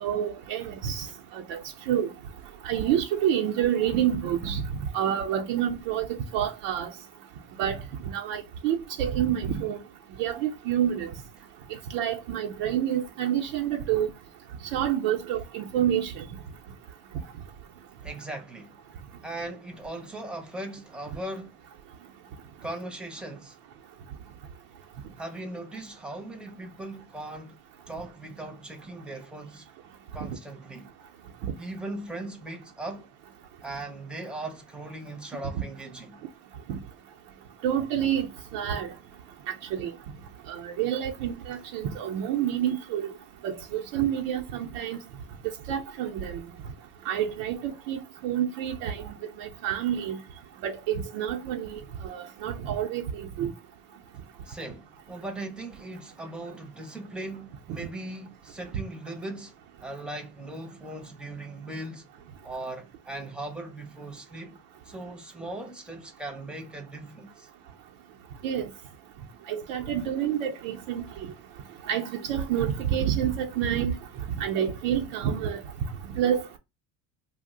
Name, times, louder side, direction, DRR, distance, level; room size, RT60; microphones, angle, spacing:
voice 1, 0.0-1.1 1.3-1.6 1.9-2.1 2.6-4.6 4.9-6.1 6.3-6.9 7.6-7.8 8.1-9.8 10.2-11.1 11.9-14.1 14.7-16.2 31.4-31.5 36.7-36.8 37.6-38.3 38.5-38.9 39.7-39.9 40.5-43.1 43.4-45.0 45.7-46.4 47.1-50.2 50.6-53.5 68.4-68.7 69.5-71.3 71.9-73.9 74.4-75.6 76.1-76.6, right 10 dB, 85° right, 0.6 m, -28 dB
voice 2, 18.0-18.8 19.2-21.6 22.6-23.6 25.2-27.6 27.9-29.7 30.1-30.9 31.6-33.1 33.6-36.2 54.4-59.5 59.8-62.1 62.4-64.6 64.8-67.5, right 2 dB, ahead, 0.5 m, -39 dB
2.5 x 2.1 x 3.6 m
cardioid pair, 110°, 48 cm